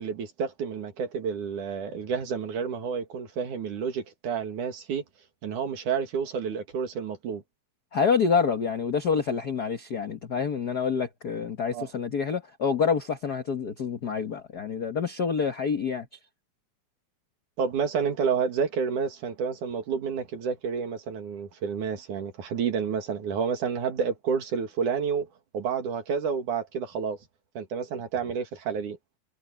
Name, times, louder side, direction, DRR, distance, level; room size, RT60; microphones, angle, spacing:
voice 1, 0.0-5.0 5.4-7.4 11.7-11.9 17.6-25.3 25.5-27.2 27.6-29.0, right 6 dB, 65° right, 3.5 m, -29 dB
voice 2, 7.9-16.1, left 6 dB, 85° left, 0.8 m, -27 dB
omnidirectional pair, 3.9 m